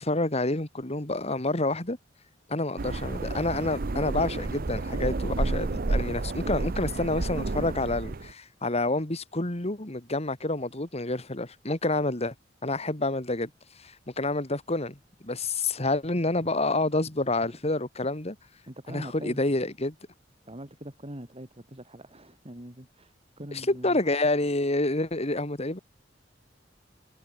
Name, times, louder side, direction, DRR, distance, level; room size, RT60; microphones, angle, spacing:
voice 1, 0.0-2.0 2.5-12.3 12.6-13.5 13.8-18.4 18.9-20.0 23.5-25.8, left 2 dB, 35° left, 2.7 m, -28 dB
sound 1, 2.8-8.3, right 2 dB, 50° right, 0.8 m, -30 dB
voice 2, 18.7-19.4 20.5-24.0, right 1 dB, 35° right, 3.5 m, -43 dB
head